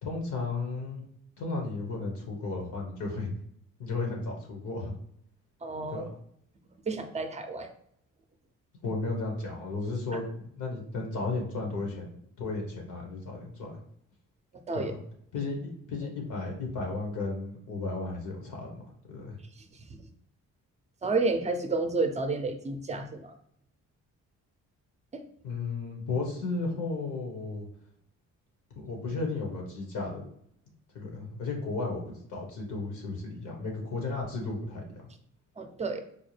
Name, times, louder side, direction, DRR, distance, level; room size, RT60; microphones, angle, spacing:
voice 1, 0.0-1.0 1.4-3.3 3.8-4.9 5.9-6.1 8.8-13.7 14.7-15.0 15.3-15.6 15.9-19.3 25.4-27.7 28.8-30.2 30.9-35.1, left 3 dB, 80° left, 0 dB, 1.2 m, -34 dB
voice 2, 5.6-6.1 6.9-7.7 14.7-14.9 21.0-23.3 25.1-25.2 35.6-36.0, right 3 dB, 20° right, 6 dB, 0.6 m, -30 dB
4.5 x 2.1 x 3.2 m, 0.70 s
cardioid pair, 90°, 30 cm